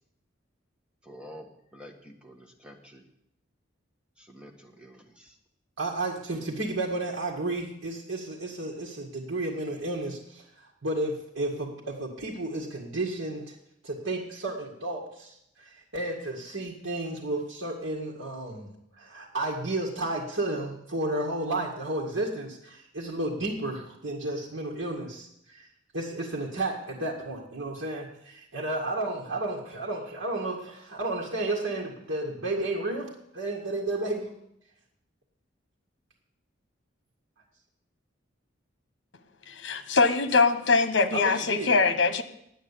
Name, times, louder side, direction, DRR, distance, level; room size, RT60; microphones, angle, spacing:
voice 1, 1.0-3.0 4.2-5.4, equal, 5° right, 2 dB, 1.6 m, -48 dB
voice 2, 5.8-13.5 13.8-25.7 25.9-34.3 41.1-41.7, right 2 dB, 85° right, -2 dB, 2.0 m, -32 dB
voice 3, 39.5-42.2, left 4 dB, 65° left, 10 dB, 1.2 m, -23 dB
10.0 x 9.1 x 8.5 m, 0.77 s
head